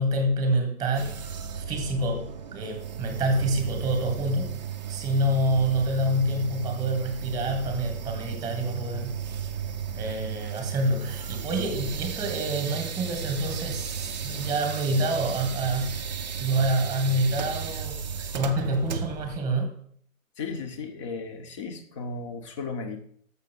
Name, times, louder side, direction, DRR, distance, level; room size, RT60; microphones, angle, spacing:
voice 1, 0.0-4.5 4.9-9.2 9.9-15.9 16.4-19.7, right 1 dB, 10° right, 5 dB, 1.2 m, -27 dB
sound 1, 0.9-19.4, right 7 dB, 30° right, 0.6 m, -34 dB
voice 2, 20.4-23.0, left 4 dB, 20° left, 7 dB, 0.8 m, -35 dB
7.0 x 5.9 x 5.2 m, 0.62 s
figure-of-eight pair, 130°, 42 cm